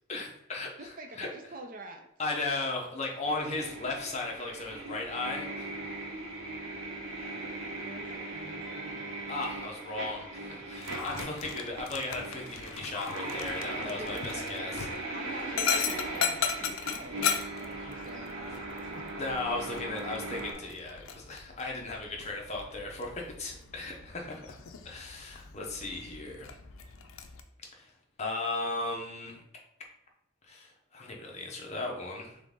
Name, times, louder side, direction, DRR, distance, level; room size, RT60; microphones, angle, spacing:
voice 1, 0.1-0.7 1.2-1.3 2.2-5.7 9.3-14.7 19.2-24.4 24.8-26.6 27.7-27.9 28.2-29.4 30.5-32.4, left 2 dB, 30° left, 0 dB, 0.8 m, -36 dB
voice 2, 0.8-2.1 7.6-9.0 13.8-14.9 15.1-19.1 24.3-24.5, right 1 dB, 40° right, 5 dB, 0.5 m, -47 dB
sound 1, 3.2-20.5, right 2 dB, 80° right, 1.3 m, -39 dB
Dog, 10.8-27.4, left 7 dB, 75° left, 0.5 m, -37 dB
3.8 x 3.4 x 3.7 m, 0.76 s
head